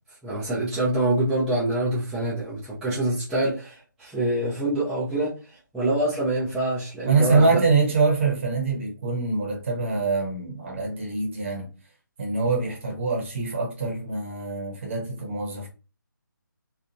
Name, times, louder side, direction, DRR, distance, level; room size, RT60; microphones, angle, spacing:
voice 1, 0.2-5.3 5.7-7.6, right 1 dB, 5° right, 0.5 m, -25 dB
voice 2, 7.1-11.7 12.2-15.7, right 4 dB, 35° right, 0.9 m, -24 dB
2.8 x 2.4 x 2.5 m
figure-of-eight pair, 150°, 11 cm